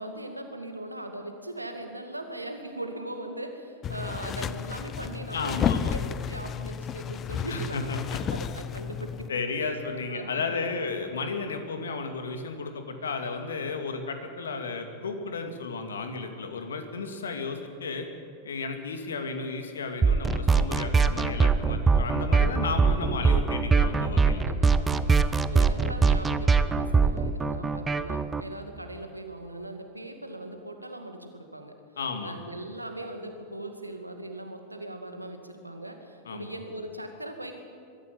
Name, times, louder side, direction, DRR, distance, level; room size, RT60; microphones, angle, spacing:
voice 1, 0.0-8.0 8.3-9.3 9.6-9.7 10.1-10.9 24.2-31.8 32.2-37.5, right 1 dB, 85° right, 5 dB, 2.2 m, -39 dB
sound 1, 3.8-9.3, left 8 dB, 30° left, 0.7 m, -32 dB
voice 2, 5.3-5.9 7.5-8.2 9.3-18.1 18.4-24.5 32.0-32.4 36.3-36.5, left 4 dB, 65° left, 6 dB, 2.3 m, -33 dB
sound 2, 20.0-28.4, right 4 dB, 15° right, 0.8 m, -22 dB
22.5 x 13.5 x 9.1 m, 2.4 s
figure-of-eight pair, 90°, 0 cm